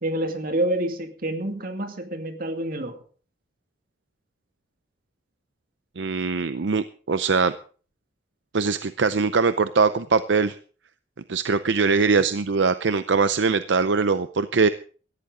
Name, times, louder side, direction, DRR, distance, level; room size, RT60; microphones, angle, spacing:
voice 1, 0.0-3.0, right 1 dB, 50° right, 2.3 m, -27 dB
voice 2, 6.0-7.5 8.5-10.6 11.3-14.7, right 4 dB, 75° right, 0.6 m, -22 dB
18.0 x 13.5 x 3.8 m
head